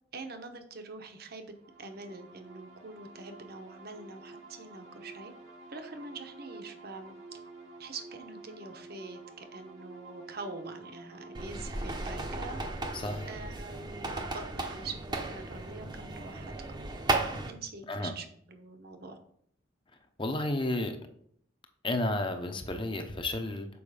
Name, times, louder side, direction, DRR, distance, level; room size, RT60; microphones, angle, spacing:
voice 1, 0.1-1.5 1.8-5.3 5.7-7.1 7.8-12.6 13.3-16.5 17.5-19.2, right 3 dB, 50° right, 7 dB, 0.9 m, -44 dB
sound 1, 1.5-15.0, right 3 dB, 80° right, 2.0 m, -50 dB
sound 2, 11.3-17.5, right 2 dB, 20° right, 0.8 m, -35 dB
voice 2, 12.9-13.3 17.9-18.1 20.2-21.0 21.8-23.7, left 1 dB, 25° left, 6 dB, 0.8 m, -32 dB
7.1 x 5.0 x 4.9 m, 0.67 s
head